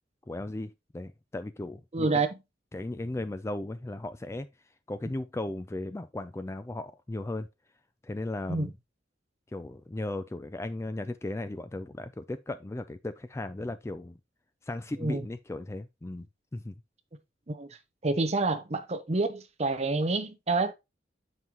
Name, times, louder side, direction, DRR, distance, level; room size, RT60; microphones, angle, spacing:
voice 1, 0.3-2.2 2.7-4.5 4.9-7.5 8.0-8.7 9.5-14.2 14.7-16.3 16.5-16.7, left 2 dB, 15° left, 0.3 m, -36 dB
voice 2, 1.9-2.3 8.5-8.7 15.0-15.2 17.5-17.8 18.0-20.7, right 3 dB, 35° right, 0.8 m, -28 dB
7.8 x 5.5 x 2.9 m
head